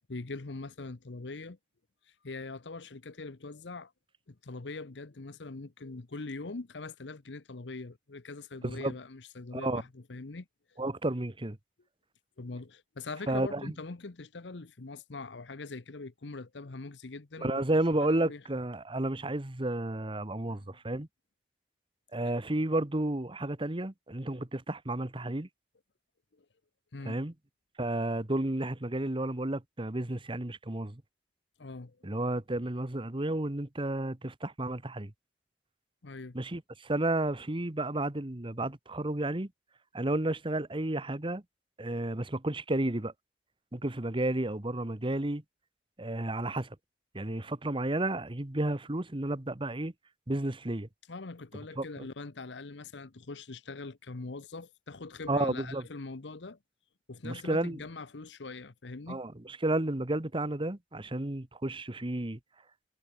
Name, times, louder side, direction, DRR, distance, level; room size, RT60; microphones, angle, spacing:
voice 1, 0.1-1.6 2.2-3.9 4.3-10.5 12.4-17.6 18.0-18.4 20.5-20.7 26.3-26.5 26.9-27.2 31.6-32.0 36.0-36.4 51.1-56.6 57.1-59.2, left 3 dB, 85° left, 1.0 m, -42 dB
voice 2, 10.8-11.6 13.3-13.7 17.4-21.1 22.1-25.5 27.0-27.3 27.8-31.0 32.0-35.1 36.3-39.5 39.9-41.4 41.8-43.1 43.7-45.4 46.0-46.8 47.1-49.9 50.3-50.9 51.8-52.0 55.3-55.8 57.2-57.8 59.1-62.4, right 1 dB, 30° right, 1.4 m, -32 dB
head